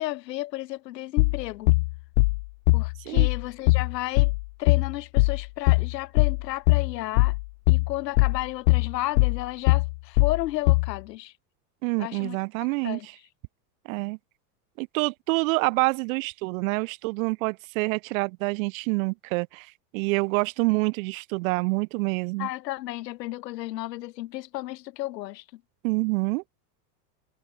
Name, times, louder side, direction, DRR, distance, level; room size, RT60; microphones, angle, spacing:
voice 1, 0.0-1.7 2.7-4.3 4.6-7.3 7.7-11.3 12.0-12.4 12.8-13.1 22.4-25.4, left 16 dB, 80° left, 7.7 m, -33 dB
sound 1, 1.2-11.0, left 25 dB, 45° left, 0.6 m, -21 dB
voice 2, 11.8-13.1 13.9-14.2 14.8-19.7 19.9-22.5 25.8-26.4, right 26 dB, 55° right, 4.2 m, -27 dB
supercardioid pair, 165°, 49 cm